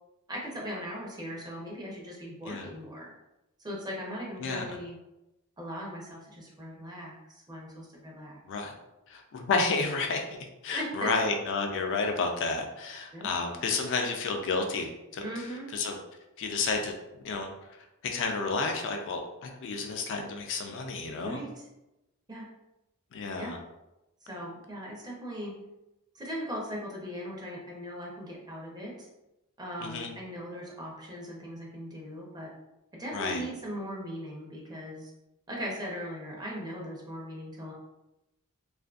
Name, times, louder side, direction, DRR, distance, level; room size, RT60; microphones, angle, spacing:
voice 1, 0.3-3.1 3.6-5.0 5.6-8.4 10.7-11.1 13.1-13.3 15.2-15.7 21.1-21.7 22.3-22.5 23.3-23.5 24.2-25.6 26.1-29.1 29.6-32.5 32.9-35.1 35.5-37.7, equal, 20° right, -3 dB, 0.6 m, -39 dB
voice 2, 9.1-10.3 10.6-15.2 15.7-16.0 16.4-16.9 17.2-17.5 18.0-21.4 23.1-23.6 29.8-30.1 33.1-33.4, left 4 dB, 55° left, 3 dB, 0.4 m, -31 dB
2.5 x 2.5 x 2.3 m, 0.95 s
head